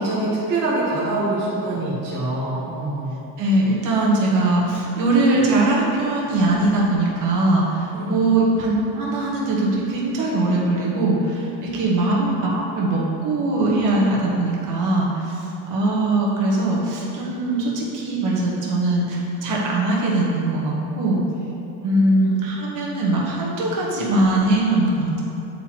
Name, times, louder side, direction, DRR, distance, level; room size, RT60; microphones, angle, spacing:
voice 1, 0.0-3.2 7.9-8.2 21.8-22.0, right 2 dB, 25° right, -8 dB, 0.8 m, -24 dB
voice 2, 3.4-21.2 21.8-25.2, right 2 dB, 45° right, -4 dB, 1.2 m, -21 dB
9.1 x 4.3 x 2.8 m, 3.0 s
cardioid pair, 180°, 42 cm